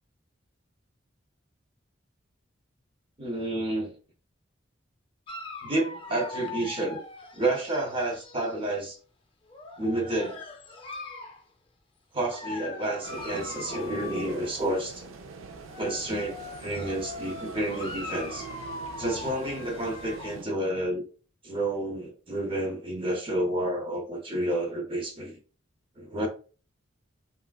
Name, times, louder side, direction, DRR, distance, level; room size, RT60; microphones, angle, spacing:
voice 1, 3.2-3.9 5.6-7.0 7.3-9.0 9.8-10.4 12.1-15.1 15.8-18.5 19.0-21.0 21.4-25.4 26.0-26.3, right 1 dB, 25° right, 0.6 m, -30 dB
Dog, 5.3-8.7 9.5-11.4 12.2-14.8 15.5-20.4, left 3 dB, 25° left, 0.4 m, -41 dB
sound 1, 13.0-20.4, right 4 dB, 75° right, 0.4 m, -43 dB
3.1 x 2.4 x 2.2 m
head